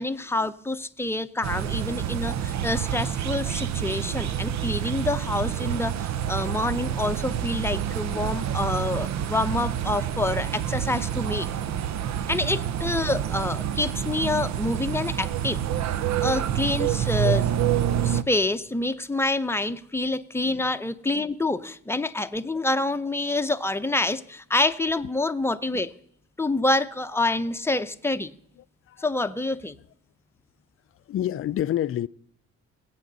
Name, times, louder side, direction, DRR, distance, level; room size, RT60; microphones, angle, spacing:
voice 1, 0.0-11.5 12.3-15.6 16.2-17.5 18.0-25.9 26.4-28.3 29.0-29.8, left 2 dB, 10° left, 0.7 m, -27 dB
sound 1, 1.4-18.2, right 10 dB, 65° right, 0.7 m, -28 dB
voice 2, 31.1-32.1, left 12 dB, 45° left, 0.5 m, -27 dB
22.5 x 8.5 x 4.0 m
cardioid pair, 90°, 30 cm